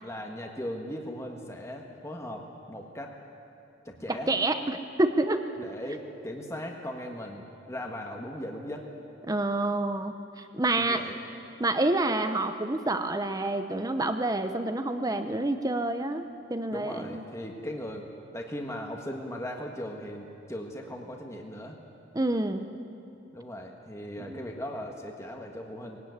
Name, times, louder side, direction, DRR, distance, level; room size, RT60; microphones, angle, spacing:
voice 1, 0.0-3.1 3.8-4.3 5.6-8.9 10.7-11.2 16.7-18.1 18.3-21.8 23.3-26.0, equal, 15° left, 1 dB, 1.5 m, -38 dB
voice 2, 4.1-5.4 9.3-11.0 11.6-17.2 22.1-22.7 24.3-24.4, right 2 dB, 20° right, 8 dB, 0.7 m, -28 dB
20.5 x 17.0 x 9.6 m, 2.7 s
head